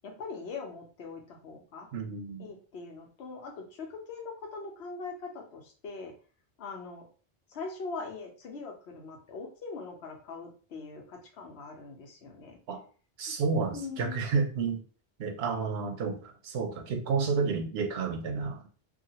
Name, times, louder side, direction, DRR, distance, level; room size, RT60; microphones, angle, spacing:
voice 1, 0.0-1.9 2.4-6.1 6.6-7.1 7.5-12.6 13.7-14.3, left 4 dB, 90° left, 2 dB, 1.0 m, -42 dB
voice 2, 1.9-2.4 12.7-12.8 13.2-14.8 15.2-18.7, right 5 dB, 90° right, 5 dB, 0.9 m, -31 dB
2.8 x 2.4 x 2.8 m, 0.39 s
omnidirectional pair, 1.0 m